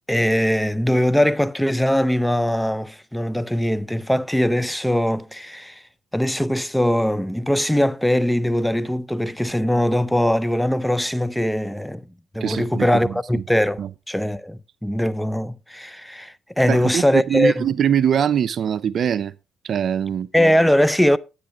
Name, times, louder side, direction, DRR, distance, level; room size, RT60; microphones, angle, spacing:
voice 1, 0.1-5.8 6.1-12.0 12.3-13.8 14.1-17.6 20.3-21.2, equal, 5° left, 0.5 m, -21 dB
voice 2, 12.4-13.4 13.8-13.9 16.7-19.3 19.6-20.3, right 9 dB, 60° right, 0.6 m, -22 dB
10.0 x 9.4 x 2.9 m
cardioid pair, 90°, 0 cm